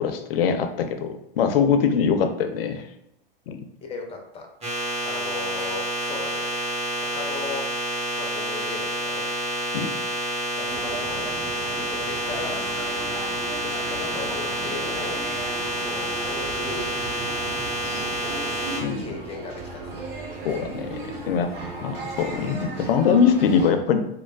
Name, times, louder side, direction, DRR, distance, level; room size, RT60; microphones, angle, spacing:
voice 1, 0.0-2.8 3.5-3.6 9.7-9.9 18.8-19.1 20.4-21.5 21.8-24.1, left 6 dB, 75° left, 7 dB, 0.4 m, -22 dB
voice 2, 3.8-4.5 5.0-6.5 7.0-7.6 8.2-9.6 10.5-11.3 11.7-12.6 13.7-16.9 17.8-18.1 19.0-19.9, left 4 dB, 20° left, 3 dB, 0.5 m, -37 dB
sound 1, 4.6-18.8, equal, 20° right, 1.0 m, -28 dB
sound 2, 10.7-23.7, right 2 dB, 75° right, 0.9 m, -36 dB
3.1 x 2.0 x 2.2 m, 0.84 s
hypercardioid pair, 105°, 29 cm